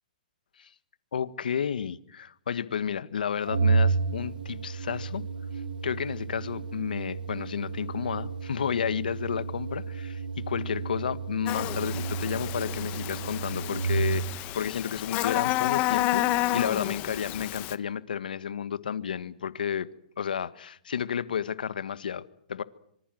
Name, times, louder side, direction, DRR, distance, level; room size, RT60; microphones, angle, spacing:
voice 1, 1.1-5.2 5.8-14.2 14.5-19.9 20.2-22.6, left 8 dB, 80° left, 1.6 m, -32 dB
Organ, 3.4-14.5, right 4 dB, 90° right, 5.1 m, -31 dB
Buzz, 11.5-17.7, left 16 dB, 30° left, 1.1 m, -30 dB
26.0 x 24.5 x 7.8 m
hypercardioid pair, 140°, 5 cm